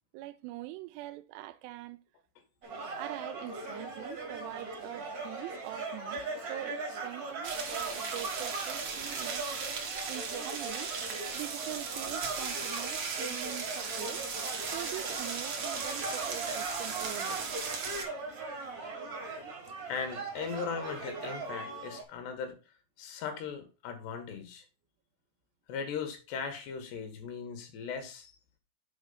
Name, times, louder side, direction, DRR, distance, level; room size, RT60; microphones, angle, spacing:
voice 1, 0.1-2.0 3.0-6.2 6.5-9.5 9.8-10.9 11.3-14.2 14.7-17.7, right 16 dB, 90° right, 2.7 m, -43 dB
sound 1, 2.6-22.0, right 3 dB, 50° right, 1.1 m, -40 dB
sound 2, 7.4-18.0, right 5 dB, 75° right, 1.3 m, -37 dB
voice 2, 19.9-22.6 23.0-24.7 25.7-28.4, left 6 dB, 75° left, 3.5 m, -38 dB
8.0 x 4.4 x 5.6 m
omnidirectional pair, 4.8 m